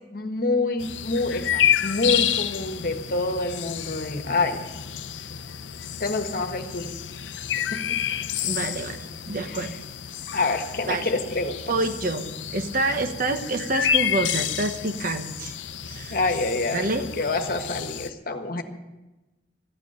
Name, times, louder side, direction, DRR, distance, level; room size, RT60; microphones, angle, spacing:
voice 1, 0.1-4.6 6.0-6.9 7.5-7.8 9.4-9.6 10.3-11.6 16.1-18.6, left 3 dB, 50° left, 6 dB, 1.4 m, -27 dB
sound 1, 0.8-18.1, left 9 dB, 85° left, 0.6 m, -30 dB
voice 2, 8.4-9.7 10.9-11.1 11.7-12.2 12.5-15.5 15.9-16.2 16.7-17.0, right 2 dB, 50° right, 6 dB, 1.3 m, -27 dB
14.0 x 9.2 x 9.0 m, 1.1 s
head